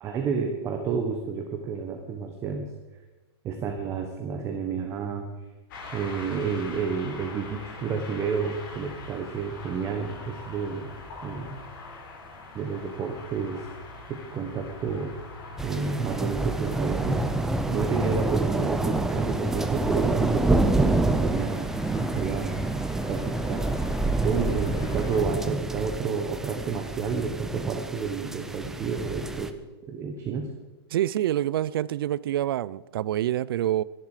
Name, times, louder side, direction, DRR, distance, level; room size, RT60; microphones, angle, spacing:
voice 1, 0.0-2.7 3.4-5.3 5.9-10.9 11.2-11.6 12.5-13.6 14.1-15.1 15.6-17.2 17.7-22.6 23.1-23.9 24.2-29.5 29.9-30.5, right 5 dB, 20° right, 1.3 m, -30 dB
sound 1, 5.7-25.2, left 3 dB, 50° left, 4.1 m, -44 dB
sound 2, 15.6-29.5, right 2 dB, 5° right, 0.5 m, -27 dB
voice 2, 30.9-33.8, right 12 dB, 60° right, 0.5 m, -26 dB
22.5 x 11.0 x 5.0 m
hypercardioid pair, 160°, 14 cm